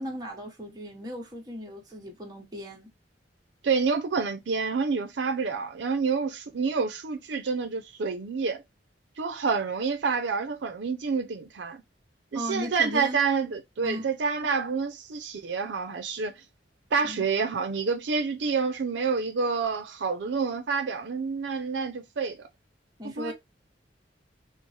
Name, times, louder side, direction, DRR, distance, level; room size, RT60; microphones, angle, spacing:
voice 1, 0.0-2.9 12.3-13.2 13.8-14.0 17.0-17.2 23.0-23.3, equal, 20° right, 1.0 m, -36 dB
voice 2, 3.6-8.6 9.2-11.8 12.3-16.3 16.9-22.4 23.2-23.3, right 5 dB, 80° right, 0.5 m, -28 dB
4.2 x 2.0 x 3.1 m
head